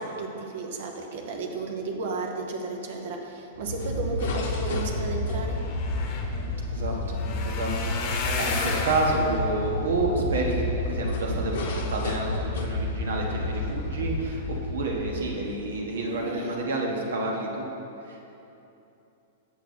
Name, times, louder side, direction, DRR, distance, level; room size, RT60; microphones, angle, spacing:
voice 1, 0.0-5.6 16.0-16.6, right 3 dB, 65° right, 2 dB, 0.9 m, -33 dB
sound 1, 3.6-15.7, left 2 dB, 70° left, 0.9 m, -30 dB
sound 2, 5.4-11.5 12.1-12.5 12.9-13.1 13.4-13.5, left 4 dB, 45° left, 0.9 m, -34 dB
voice 2, 6.7-7.2 7.4-17.7 18.1-18.2, right 2 dB, 90° right, -1 dB, 1.3 m, -29 dB
7.2 x 6.8 x 4.2 m, 2.9 s
hypercardioid pair, 135°, 0 cm